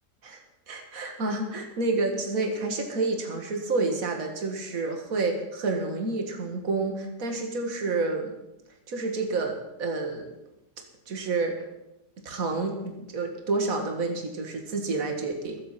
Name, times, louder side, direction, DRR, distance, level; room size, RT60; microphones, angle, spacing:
voice 1, 0.2-8.3 8.9-10.3 11.1-11.7 12.2-15.6, right 3 dB, 55° right, 3 dB, 2.4 m, -29 dB
21.0 x 8.1 x 5.9 m, 0.91 s
omnidirectional pair, 1.8 m